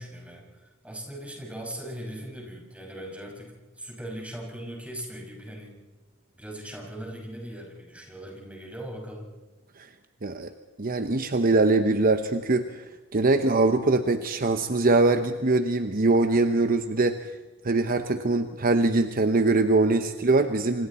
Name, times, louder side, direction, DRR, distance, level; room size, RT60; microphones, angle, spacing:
voice 1, 0.0-5.8 6.3-9.3, right 1 dB, 5° right, -1 dB, 5.9 m, -39 dB
voice 2, 10.8-12.8 13.1-17.3 17.6-20.9, right 2 dB, 45° right, 8 dB, 0.9 m, -22 dB
27.5 x 26.5 x 4.3 m, 1.2 s
head